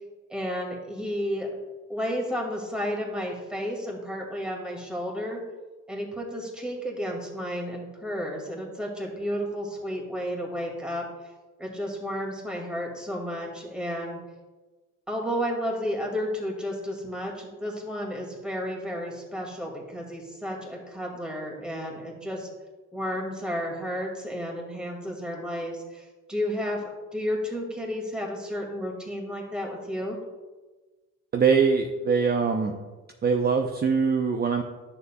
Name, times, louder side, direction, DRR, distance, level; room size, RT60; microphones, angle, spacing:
voice 1, 0.3-1.5 1.9-5.4 5.9-11.0 11.6-14.2 15.1-22.5 22.9-30.2, equal, 5° right, -1 dB, 2.2 m, -32 dB
voice 2, 31.3-32.7 33.2-34.6, right 5 dB, 35° right, 3 dB, 0.7 m, -22 dB
11.0 x 6.8 x 2.3 m, 1.2 s
cardioid pair, 90°, 30 cm